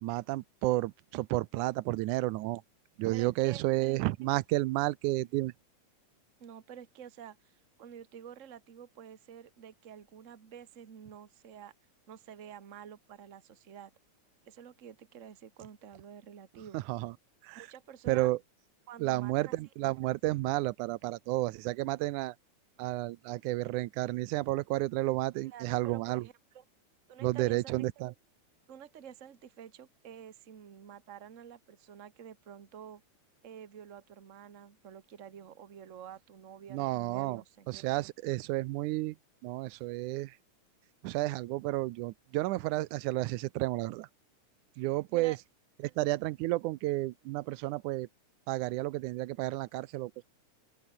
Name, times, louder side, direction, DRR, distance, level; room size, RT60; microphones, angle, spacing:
voice 1, 0.0-2.6 3.0-5.5 16.7-17.1 17.4-17.7 18.1-18.4 19.0-22.4 22.8-26.3 27.2-28.1 36.7-39.2 39.4-40.3 41.0-44.1 44.8-45.4 46.0-48.1 48.5-50.2, right 19 dB, 85° right, 2.1 m, -31 dB
voice 2, 3.1-3.6 5.2-5.3 6.4-11.7 12.1-13.9 14.4-16.8 17.5-18.3 18.9-19.6 25.4-26.6 27.1-27.9 28.7-33.0 33.4-37.7 44.7-45.4, right 8 dB, 35° right, 1.3 m, -49 dB
open air
omnidirectional pair, 3.4 m